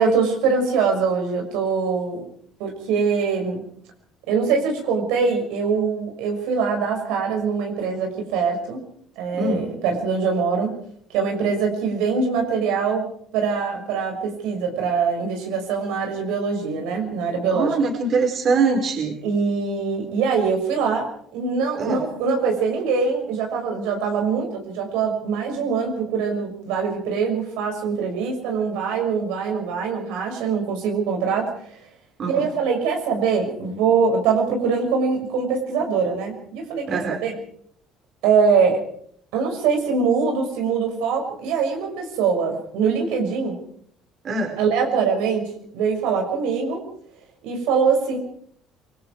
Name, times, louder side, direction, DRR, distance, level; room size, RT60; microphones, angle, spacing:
voice 1, 0.0-2.2 2.6-3.6 4.3-8.8 9.2-10.7 11.1-13.1 13.3-17.7 19.2-31.8 32.2-37.4 38.2-38.8 39.3-43.6 44.6-46.8 47.4-48.2, right 5 dB, 90° right, 2 dB, 6.3 m, -23 dB
voice 2, 17.5-19.2 21.8-22.0 32.2-32.5 36.9-37.2 44.2-44.5, right 4 dB, 45° right, 3 dB, 4.9 m, -23 dB
27.0 x 20.5 x 4.8 m, 0.63 s
cardioid pair, 110°, 0 cm